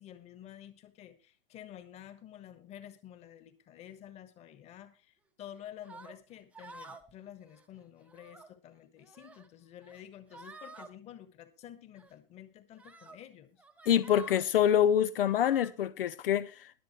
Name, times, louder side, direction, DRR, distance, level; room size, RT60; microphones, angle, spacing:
voice 1, 0.0-13.6, left 11 dB, 20° left, 1.5 m, -50 dB
sound 1, 5.8-6.1 6.5-7.1 7.4-7.6 8.0-8.5 9.0-9.5 9.8-10.0 10.3-10.9 12.0-12.1 12.8-13.2 13.6-14.5 15.2-15.7, right 3 dB, 5° right, 0.9 m, -50 dB
voice 2, 13.9-16.7, left 10 dB, 70° left, 0.7 m, -26 dB
22.0 x 7.8 x 3.1 m
hypercardioid pair, 155°, 29 cm